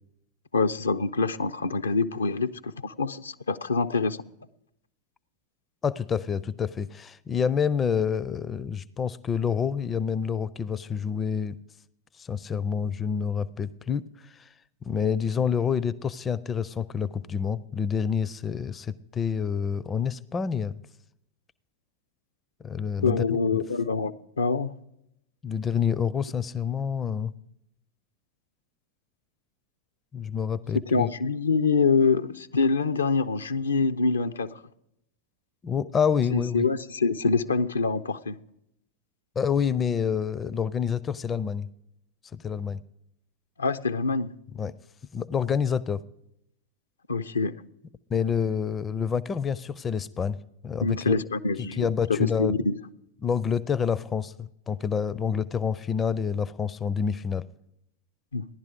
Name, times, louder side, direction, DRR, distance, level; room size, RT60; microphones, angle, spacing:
voice 1, 0.5-4.2 23.0-24.7 30.9-34.6 36.3-38.4 43.6-44.3 47.1-47.6 50.8-52.8 58.3-58.5, left 4 dB, 75° left, 0.5 m, -25 dB
voice 2, 5.8-11.6 12.2-14.5 14.8-20.7 22.6-23.6 25.4-27.3 30.1-31.1 35.6-36.7 39.4-41.7 42.3-42.8 44.6-44.7 45.1-46.0 48.1-50.4 50.6-51.2 51.6-52.6 53.2-57.5, left 7 dB, 20° left, 0.4 m, -28 dB
16.0 x 11.0 x 5.1 m
figure-of-eight pair, 90°, 0 cm